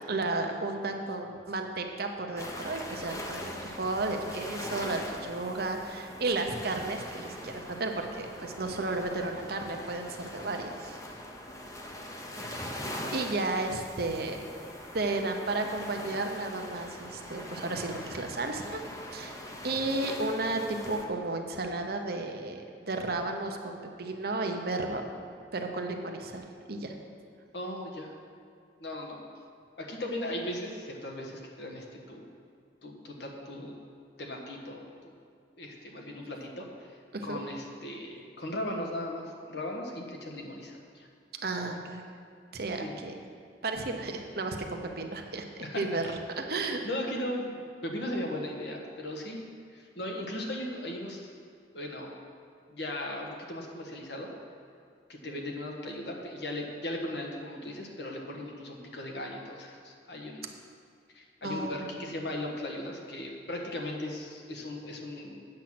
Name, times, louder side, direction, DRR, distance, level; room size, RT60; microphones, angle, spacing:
voice 1, 0.1-11.0 12.6-12.8 13.1-14.4 14.9-18.8 19.1-19.4 19.6-25.1 25.5-26.9 37.1-37.4 41.4-42.0 42.5-43.2 43.6-46.8 61.4-62.0, right 2 dB, 55° right, 4 dB, 0.9 m, -33 dB
sound 1, 2.4-21.1, left 1 dB, 20° left, 0.8 m, -42 dB
voice 2, 27.5-28.1 28.8-29.2 29.8-32.3 32.8-33.7 34.2-35.1 35.6-41.1 42.8-43.0 45.6-45.8 46.8-49.4 49.7-51.3 51.7-52.2 52.7-54.3 55.1-60.5 61.1-65.5, left 1 dB, 65° left, 0 dB, 1.4 m, -37 dB
8.9 x 7.4 x 6.0 m, 2.3 s
head